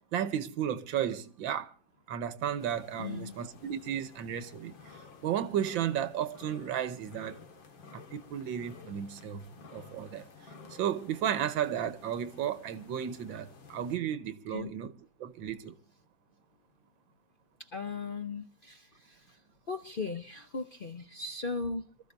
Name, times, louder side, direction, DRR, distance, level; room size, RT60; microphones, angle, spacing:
voice 1, 0.1-1.7 2.1-7.4 7.9-9.5 9.7-10.2 10.7-14.9 15.2-15.8, right 9 dB, 90° right, 1.7 m, -34 dB
sound 1, 2.6-14.0, left 5 dB, 85° left, 2.6 m, -53 dB
voice 2, 3.0-3.3 14.5-14.7 17.6-21.9, left 4 dB, 50° left, 0.6 m, -38 dB
27.0 x 14.0 x 2.6 m
omnidirectional pair, 2.0 m